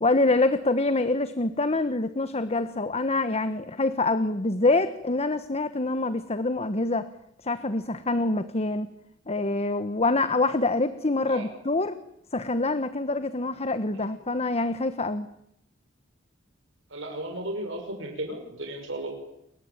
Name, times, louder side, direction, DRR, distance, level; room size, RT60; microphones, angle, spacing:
voice 1, 0.0-7.1 7.4-8.9 9.3-12.0 12.3-15.3, left 2 dB, 30° left, 12 dB, 1.3 m, -25 dB
voice 2, 16.9-19.1, right 1 dB, 70° right, 3 dB, 6.3 m, -35 dB
30.0 x 22.5 x 8.9 m, 0.78 s
head